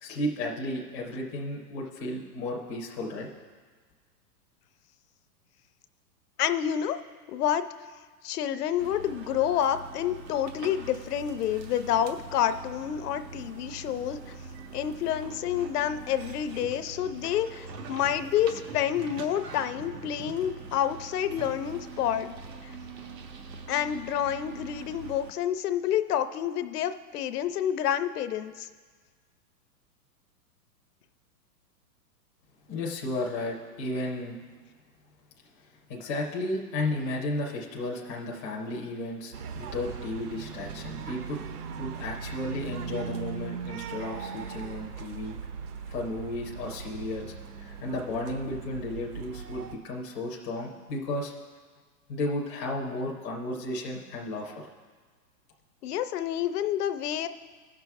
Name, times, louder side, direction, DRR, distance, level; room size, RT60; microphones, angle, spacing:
voice 1, 0.0-3.3 32.7-34.4 35.9-41.4 41.8-45.4 45.9-47.3 47.6-51.3 52.1-54.6, left 1 dB, 15° left, -3 dB, 0.4 m, -33 dB
voice 2, 6.4-7.0 7.3-7.6 8.2-14.3 14.7-22.3 23.7-28.7 55.8-57.3, left 10 dB, 70° left, 11 dB, 0.6 m, -28 dB
sound 1, 8.8-25.3, right 4 dB, 85° right, 1.2 m, -43 dB
sound 2, 39.3-49.8, right 6 dB, 70° right, 0.9 m, -39 dB
15.5 x 6.0 x 3.5 m, 1.5 s
hypercardioid pair, 150°, 48 cm